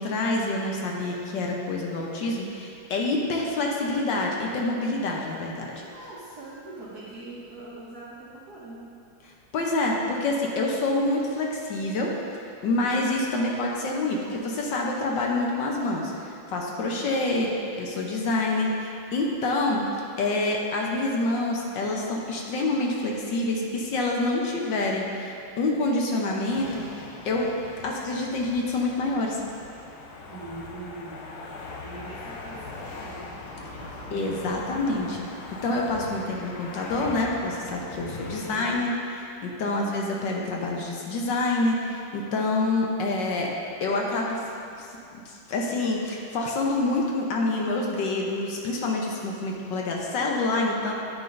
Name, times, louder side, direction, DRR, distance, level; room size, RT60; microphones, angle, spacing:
voice 1, 0.0-5.7 9.5-12.1 12.6-19.8 20.2-26.8 27.2-27.5 27.8-29.4 34.1-35.2 35.6-43.5 43.8-44.4 44.8-50.9, left 2 dB, 65° left, -1 dB, 1.4 m, -27 dB
voice 2, 5.8-8.8 16.8-17.1 30.3-33.2 33.7-34.4 38.3-38.7, right 2 dB, 55° right, -9 dB, 1.4 m, -42 dB
sound 1, 26.5-38.9, left 3 dB, 85° left, 1.6 m, -41 dB
9.2 x 8.9 x 2.5 m, 2.5 s
omnidirectional pair, 2.3 m